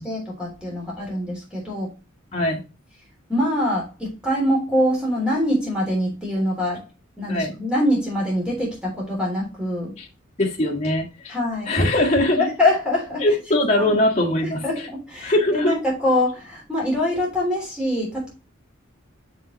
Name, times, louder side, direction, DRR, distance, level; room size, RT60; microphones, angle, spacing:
voice 1, 0.0-1.9 3.3-6.8 7.2-10.0 11.3-11.7 12.3-13.2 13.8-13.9 14.6-18.3, left 1 dB, 5° right, 3.2 m, -24 dB
voice 2, 10.4-11.3 11.7-12.4 13.2-14.6 15.2-15.7, left 1 dB, 35° left, 1.8 m, -21 dB
6.7 x 5.5 x 3.1 m
head